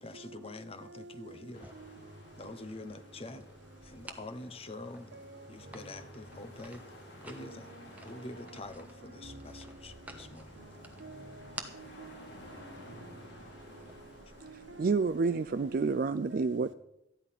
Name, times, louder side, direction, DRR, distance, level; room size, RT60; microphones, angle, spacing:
voice 1, 0.0-1.7 2.4-3.4 3.8-5.1 5.5-6.8 7.2-7.7 8.1-10.5, left 2 dB, 30° left, 1.0 m, -45 dB
sound 1, 1.5-16.0, left 1 dB, 80° left, 3.1 m, -54 dB
sound 2, 1.5-14.0, right 2 dB, 10° right, 1.2 m, -52 dB
voice 2, 5.1-5.5 7.4-7.6 8.1-8.2 9.2-9.7 10.6-10.7 11.0-12.3 12.9-13.1 14.4-15.0 15.5-15.9 16.3-16.6, right 2 dB, 85° right, 1.3 m, -49 dB
voice 3, 14.8-16.7, right 4 dB, 50° right, 0.4 m, -29 dB
14.0 x 10.5 x 5.8 m
head